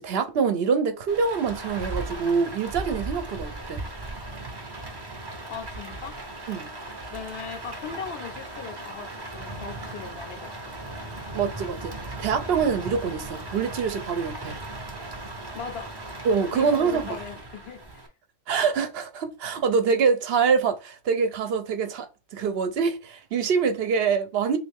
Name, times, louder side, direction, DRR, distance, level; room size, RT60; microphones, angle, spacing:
voice 1, 0.0-3.8 6.5-6.7 11.3-14.6 16.2-17.1 18.5-24.6, right 5 dB, 70° right, 0.8 m, -25 dB
Rain, 1.1-18.1, right 2 dB, 30° right, 0.5 m, -37 dB
voice 2, 5.5-6.1 7.1-10.8 15.5-15.9 16.5-17.8, left 6 dB, 65° left, 0.8 m, -38 dB
3.1 x 2.6 x 3.4 m
omnidirectional pair, 1.1 m